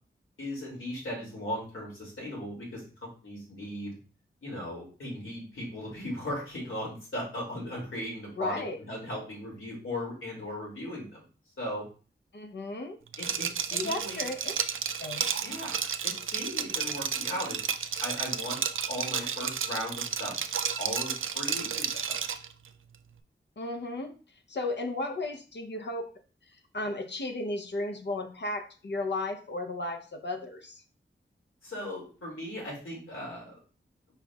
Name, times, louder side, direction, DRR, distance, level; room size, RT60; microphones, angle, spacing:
voice 1, 0.4-3.9 4.4-11.2 11.6-11.9 13.2-14.2 15.4-17.6 18.0-20.3 20.8-22.2 31.6-33.6, left 1 dB, 80° left, -3 dB, 2.4 m, -37 dB
voice 2, 8.4-8.8 12.3-13.0 13.7-14.5 15.0-15.3 23.6-24.1 24.5-26.1 26.7-30.8, left 2 dB, 60° left, 4 dB, 0.7 m, -34 dB
Liquid, 13.1-22.5, right 7 dB, 75° right, 0.4 m, -32 dB
5.2 x 4.4 x 2.3 m, 0.37 s
wide cardioid pair, 75°, 21 cm